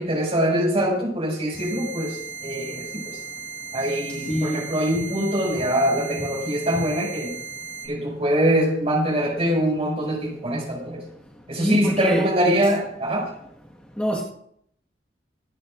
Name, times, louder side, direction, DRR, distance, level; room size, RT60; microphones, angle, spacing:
voice 1, 0.0-3.2 3.7-7.3 7.8-11.0 11.5-13.3, right 1 dB, 35° right, -2 dB, 6.6 m, -23 dB
sound 1, 1.5-7.9, right 6 dB, 55° left, 6.2 m, -36 dB
voice 2, 4.3-4.6 11.6-12.2 14.0-14.2, equal, 10° left, -4 dB, 1.7 m, -24 dB
25.5 x 9.8 x 2.6 m, 0.71 s
head